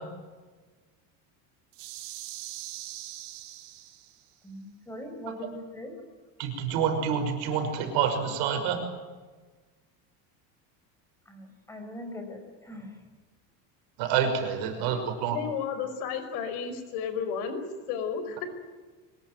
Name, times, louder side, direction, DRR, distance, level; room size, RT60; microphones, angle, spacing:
sound 1, 1.7-4.3, right 15 dB, 80° right, 3.4 m, -42 dB
voice 1, 4.4-5.9 11.2-13.0, left 1 dB, 5° left, 4 dB, 5.1 m, -41 dB
voice 2, 6.4-8.8 14.0-15.4, right 7 dB, 60° right, 6 dB, 6.0 m, -27 dB
voice 3, 15.3-18.5, left 6 dB, 85° left, 9 dB, 5.4 m, -33 dB
24.5 x 21.5 x 9.3 m, 1.3 s
cardioid pair, 175°, 43 cm